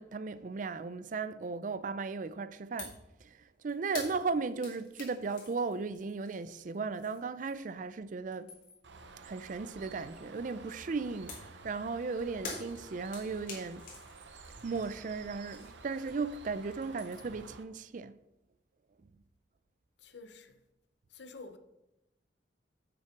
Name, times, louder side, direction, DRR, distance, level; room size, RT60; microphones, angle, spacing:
voice 1, 0.0-3.4 3.6-8.5 9.2-13.9 14.6-18.2, right 4 dB, 45° right, 0.4 m, -36 dB
sound 1, 2.8-3.1 3.3-7.8 8.2-8.9 11.3-16.4 16.7-17.4, left 3 dB, 45° left, 2.7 m, -47 dB
Bird, 8.8-17.6, right 3 dB, 75° right, 0.9 m, -52 dB
voice 2, 20.0-20.6 21.1-21.6, left 3 dB, 75° left, 0.9 m, -49 dB
7.9 x 5.8 x 5.9 m
head